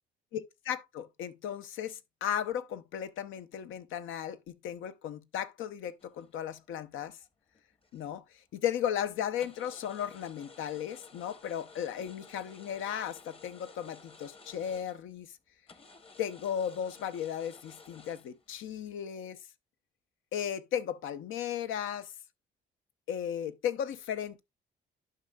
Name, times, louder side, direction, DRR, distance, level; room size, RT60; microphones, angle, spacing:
voice 1, 0.3-4.4 4.6-7.2 7.9-15.3 16.2-19.4 20.3-22.1 23.1-24.4, left 9 dB, 80° left, 0.7 m, -35 dB
sound 1, 6.0-6.8 7.2-8.2 8.5-8.8 9.4-15.2 15.7-19.0, left 4 dB, 30° left, 0.9 m, -55 dB
11.0 x 5.5 x 2.3 m
cardioid pair, 90°, 20 cm